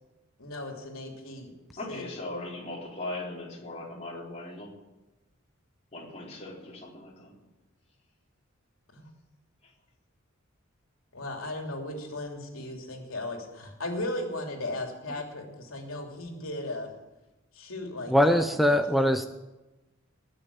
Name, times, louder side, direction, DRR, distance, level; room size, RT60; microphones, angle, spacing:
voice 1, 0.4-1.5 1.9-2.0 8.9-9.1 11.1-16.9 17.5-19.2, left 1 dB, 85° left, 2 dB, 3.0 m, -36 dB
voice 2, 1.8-4.7 5.9-7.4 9.6-9.7, left 2 dB, 35° left, -2 dB, 3.7 m, -39 dB
voice 3, 18.1-19.3, equal, ahead, 8 dB, 0.5 m, -22 dB
20.0 x 6.8 x 8.8 m, 1.1 s
head